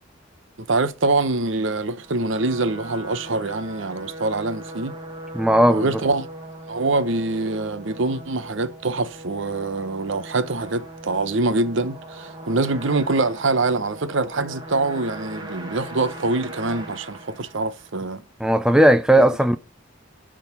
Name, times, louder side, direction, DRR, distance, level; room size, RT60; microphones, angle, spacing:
voice 1, 0.6-4.9 5.7-6.3 6.7-18.2 19.2-19.3, right 3 dB, 65° right, 0.8 m, -24 dB
sound 1, 1.8-18.1, right 1 dB, 20° right, 1.4 m, -39 dB
voice 2, 5.3-5.9 18.4-19.6, right 1 dB, 5° right, 0.4 m, -16 dB
10.5 x 3.9 x 6.7 m
head